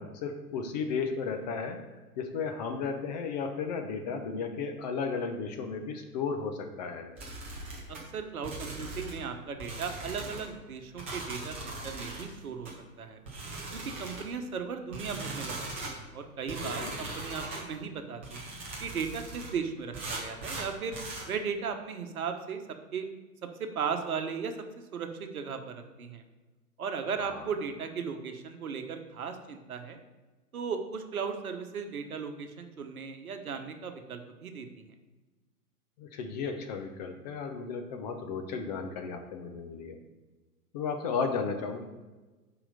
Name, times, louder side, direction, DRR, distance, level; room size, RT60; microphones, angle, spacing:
voice 1, 0.0-1.8 2.2-7.1 16.6-17.0 27.2-27.5 36.0-40.0 40.7-41.9, left 5 dB, 25° left, 5 dB, 0.7 m, -34 dB
sound 1, 7.2-8.0 8.4-9.2 9.6-10.5 11.0-12.3 12.7-12.8 13.3-14.3 14.9-16.0 16.5-17.7 18.2-19.5 19.9-21.3, right 2 dB, 10° right, 0.4 m, -39 dB
voice 2, 7.9-12.7 13.0-13.2 13.7-18.4 18.8-21.0 21.3-22.6 22.9-23.1 23.6-24.5 24.9-26.2 26.8-30.0 30.5-34.8, right 6 dB, 60° right, 6 dB, 1.2 m, -36 dB
5.9 x 5.1 x 6.7 m, 1.2 s
figure-of-eight pair, 115°, 47 cm